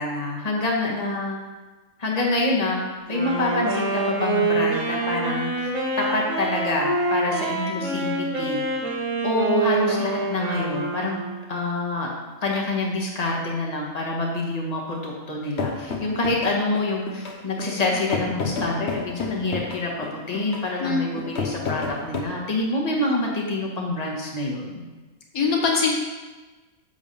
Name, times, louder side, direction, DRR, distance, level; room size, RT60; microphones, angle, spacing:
voice 1, 0.0-1.4 2.0-2.8 3.1-5.7 6.0-8.6 9.2-11.2 11.5-12.1 12.4-24.8, left 2 dB, 25° left, -2 dB, 1.6 m, -26 dB
Wind instrument woodwind instrument, 3.1-11.4, right 3 dB, 65° right, 2.7 m, -26 dB
sound 1, 15.6-22.2, left 4 dB, 50° left, 1.2 m, -31 dB
voice 2, 20.8-21.2 25.3-25.9, left 4 dB, 75° left, 0 dB, 1.6 m, -22 dB
10.5 x 3.6 x 6.9 m, 1.2 s
omnidirectional pair, 1.5 m